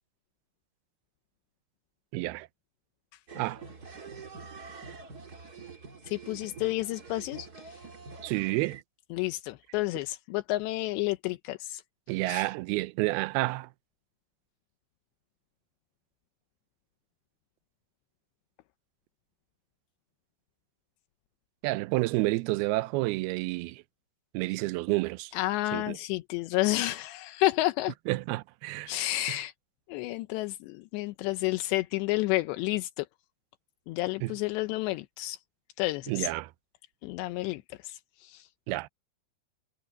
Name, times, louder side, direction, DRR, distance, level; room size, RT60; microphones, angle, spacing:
voice 1, 2.1-2.5 3.4-3.6 8.2-8.8 12.1-13.7 21.6-23.8 24.3-25.3 25.7-26.0 28.1-28.9 29.3-29.4 34.2-34.4 36.1-36.5 38.7-38.9, right 21 dB, 80° right, 2.3 m, -29 dB
sound 1, 3.3-8.8, right 4 dB, 30° right, 2.3 m, -46 dB
voice 2, 6.1-7.8 9.1-11.8 12.3-12.5 25.3-27.9 28.9-29.5 29.9-33.1 33.9-35.4 35.8-36.3 37.0-38.5, left 18 dB, 85° left, 3.0 m, -30 dB
omnidirectional pair, 5.0 m